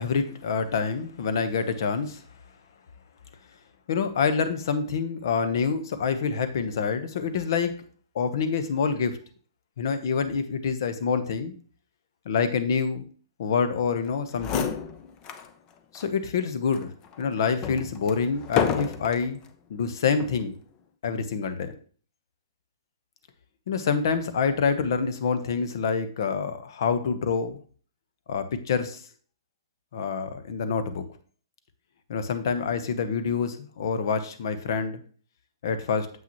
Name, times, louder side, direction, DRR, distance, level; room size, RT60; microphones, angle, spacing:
voice 1, 0.0-2.2 3.9-7.7 8.1-9.2 9.8-11.5 12.2-13.0 13.4-14.8 15.9-19.4 19.7-20.5 21.0-21.7 23.7-27.6 28.3-29.0 29.9-31.0 32.1-35.0 35.6-36.1, left 5 dB, 60° left, 10 dB, 1.0 m, -26 dB
sound 1, 14.1-14.2 14.4-15.5 15.9-16.1 16.7-19.3 20.1-20.4, left 8 dB, 30° left, 0.7 m, -30 dB
7.4 x 5.9 x 3.0 m, 0.42 s
hypercardioid pair, 130°, 2 cm